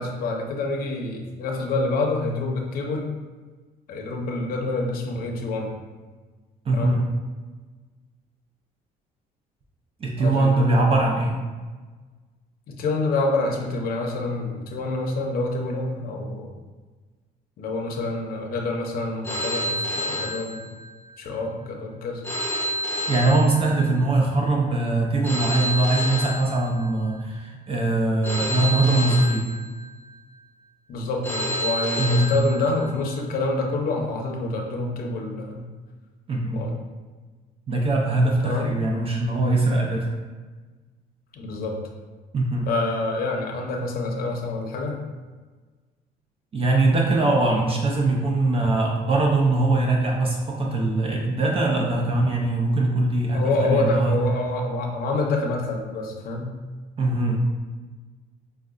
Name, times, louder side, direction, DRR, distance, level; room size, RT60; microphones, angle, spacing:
voice 1, 0.0-3.1 3.9-5.7 6.7-7.0 10.2-10.5 12.7-16.6 17.6-20.7 21.2-22.2 30.9-35.7 36.5-36.8 38.4-38.7 41.3-41.8 42.7-45.0 53.3-56.5, left 2 dB, 60° left, 1 dB, 0.6 m, -27 dB
voice 2, 6.7-7.0 10.0-11.3 23.1-29.5 32.0-32.3 36.3-36.6 37.7-40.1 42.3-42.7 46.5-54.2 57.0-57.4, right 2 dB, 35° right, -1 dB, 0.5 m, -22 dB
Telephone, 19.2-21.1 22.2-24.1 25.2-27.1 28.2-30.1 31.2-33.1, equal, 15° left, 0.7 m, -29 dB
4.7 x 2.2 x 2.4 m, 1.4 s
cardioid pair, 110°, 17 cm